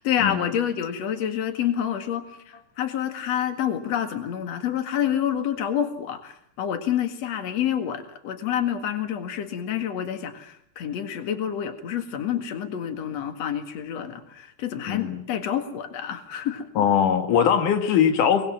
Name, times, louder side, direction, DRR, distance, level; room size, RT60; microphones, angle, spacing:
voice 1, 0.0-16.7, left 9 dB, 60° left, 8 dB, 3.0 m, -28 dB
voice 2, 14.9-15.2 16.8-18.5, left 8 dB, 85° left, 7 dB, 3.2 m, -21 dB
23.0 x 22.0 x 7.6 m, 0.68 s
omnidirectional pair, 3.5 m